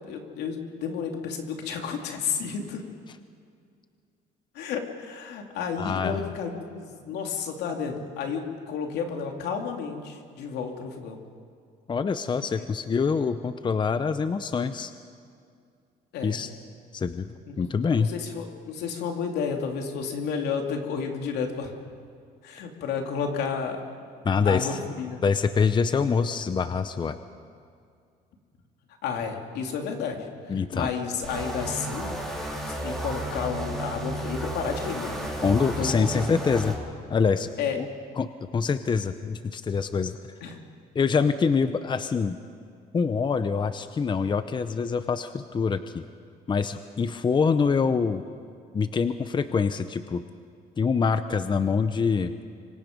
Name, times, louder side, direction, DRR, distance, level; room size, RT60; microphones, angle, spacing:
voice 1, 0.1-2.8 4.5-11.2 16.1-16.4 17.5-17.6 17.9-21.7 22.4-23.8 24.4-25.2 29.0-30.3 30.7-32.2 32.7-35.3 35.8-36.1 37.6-37.8 40.4-40.6, left 6 dB, 80° left, 3 dB, 2.9 m, -31 dB
voice 2, 5.8-6.3 11.9-14.9 16.2-16.5 16.9-18.1 24.2-24.8 25.2-27.2 30.5-30.9 35.4-36.7 37.1-37.5 37.8-37.9 38.2-40.2 40.9-42.4 42.9-46.0 46.5-48.2 48.7-50.2 50.8-52.3, left 5 dB, 25° left, 11 dB, 0.8 m, -25 dB
sound 1, 31.2-36.8, right 1 dB, 5° left, 4.1 m, -33 dB
25.5 x 25.0 x 5.3 m, 2.3 s
cardioid pair, 110°, 17 cm